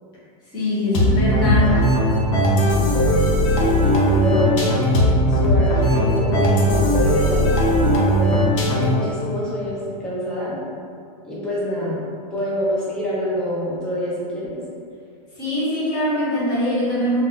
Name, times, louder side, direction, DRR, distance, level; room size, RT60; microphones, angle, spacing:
voice 1, 0.5-1.7 15.4-17.2, left 1 dB, 25° left, -9 dB, 0.8 m, -22 dB
sound 1, 0.9-9.1, equal, 55° left, 0.6 m, -18 dB
voice 2, 3.5-4.9 5.3-7.5 8.0-8.4 8.6-10.6 11.2-12.0 12.3-14.6, equal, 5° left, -8 dB, 0.3 m, -26 dB
2.3 x 2.2 x 3.6 m, 2.3 s
supercardioid pair, 170°, 20 cm